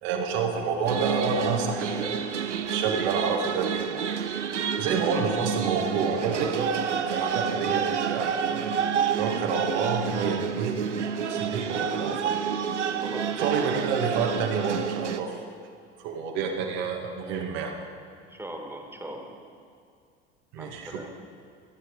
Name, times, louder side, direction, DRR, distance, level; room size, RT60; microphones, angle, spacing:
voice 1, 0.0-2.4 2.7-4.0 4.8-8.8 9.2-12.3 13.4-15.6 16.0-17.7 20.5-21.1, right 5 dB, 60° right, 1 dB, 2.3 m, -29 dB
sound 1, 0.8-15.2, right 7 dB, 85° right, 0.8 m, -29 dB
voice 2, 13.0-13.7 18.2-19.4 20.5-21.1, right 1 dB, 5° right, 2 dB, 2.6 m, -40 dB
27.0 x 10.0 x 5.1 m, 2.3 s
figure-of-eight pair, 70°, 35 cm